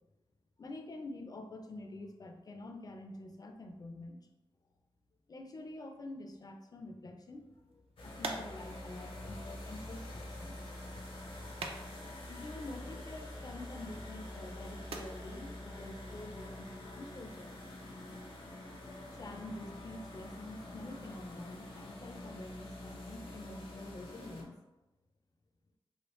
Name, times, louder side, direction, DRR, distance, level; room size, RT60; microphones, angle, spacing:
voice 1, 0.6-4.3 5.3-10.6 11.4-17.6 19.1-24.6, left 2 dB, 40° left, 4 dB, 0.4 m, -47 dB
sound 1, 7.3-17.1, right 3 dB, 80° right, 0.4 m, -49 dB
sound 2, 8.0-24.4, left 1 dB, 65° left, 0.7 m, -46 dB
3.2 x 2.4 x 3.0 m, 1.1 s
wide cardioid pair, 100°, 10 cm